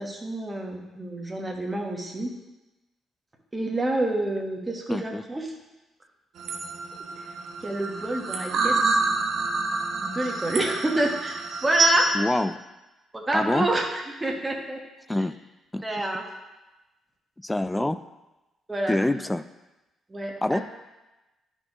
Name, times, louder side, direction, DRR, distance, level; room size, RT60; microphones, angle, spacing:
voice 1, 0.0-2.3 3.5-5.5 7.6-9.0 10.0-12.2 13.1-14.8 15.1-15.2 15.8-16.2 18.7-19.2 20.1-20.6, right 1 dB, 20° right, 1 dB, 1.2 m, -28 dB
voice 2, 4.9-5.2 12.1-12.6 13.3-13.7 15.1-15.4 15.7-15.8 17.4-18.0 18.9-19.4 20.4-20.6, left 1 dB, 10° left, 13 dB, 0.3 m, -25 dB
sound 1, 6.4-12.1, right 3 dB, 65° right, 0.7 m, -27 dB
11.0 x 4.6 x 2.9 m, 1.0 s
cardioid pair, 90°, 0 cm